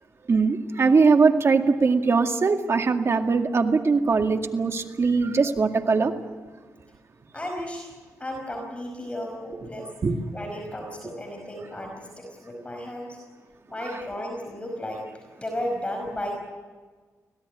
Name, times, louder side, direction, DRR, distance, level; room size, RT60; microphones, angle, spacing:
voice 1, 0.3-6.1 10.0-10.2, right 4 dB, 45° right, 5 dB, 2.1 m, -21 dB
voice 2, 7.3-7.9 8.2-9.9 10.3-13.2 13.7-16.3, left 1 dB, 20° left, 1 dB, 5.2 m, -34 dB
25.5 x 17.5 x 10.0 m, 1.4 s
cardioid pair, 100°, 6 cm